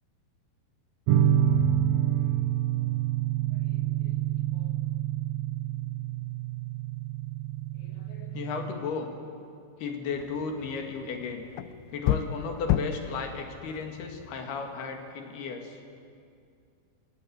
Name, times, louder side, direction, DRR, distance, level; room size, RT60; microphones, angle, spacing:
sound 1, 1.1-8.7, right 10 dB, 80° right, 3.0 m, -27 dB
voice 1, 3.5-4.1 4.5-4.8 7.8-9.1 9.8-11.5 11.9-15.8, left 5 dB, 65° left, 4 dB, 3.8 m, -35 dB
sound 2, 10.1-15.0, left 12 dB, 80° left, 2.6 m, -33 dB
28.0 x 16.0 x 9.5 m, 2.4 s
omnidirectional pair, 5.4 m